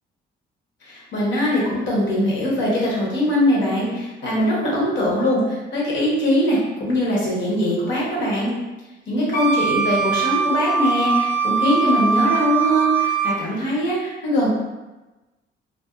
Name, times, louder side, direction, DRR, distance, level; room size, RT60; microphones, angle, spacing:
voice 1, 0.8-8.5 9.1-14.5, equal, 70° left, -5 dB, 1.0 m, -21 dB
Wind instrument woodwind instrument, 9.3-13.4, right 5 dB, 45° left, 0.6 m, -21 dB
2.5 x 2.2 x 2.3 m, 1.1 s
cardioid pair, 90°, 20 cm